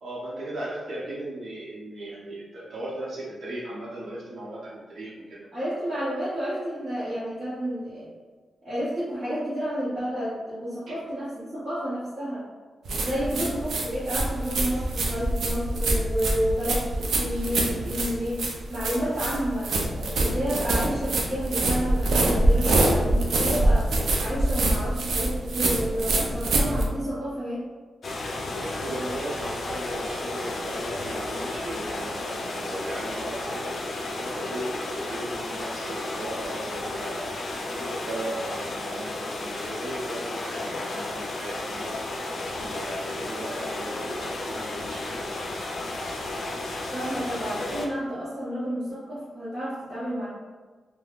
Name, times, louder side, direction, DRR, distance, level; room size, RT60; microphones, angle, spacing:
voice 1, 0.0-5.5 10.9-11.0 13.1-13.4 28.5-33.7 34.1-37.2 37.7-42.0 42.5-45.6, right 1 dB, 60° right, -6 dB, 0.8 m, -37 dB
voice 2, 5.5-8.1 8.6-12.5 13.0-23.9 24.2-27.6 46.9-50.3, equal, 30° right, -14 dB, 0.9 m, -30 dB
sound 1, 12.8-26.8, right 2 dB, 85° right, 0.4 m, -25 dB
sound 2, 28.0-47.9, left 2 dB, 50° left, 0.3 m, -33 dB
3.3 x 2.1 x 2.4 m, 1.4 s
wide cardioid pair, 160°, 0 cm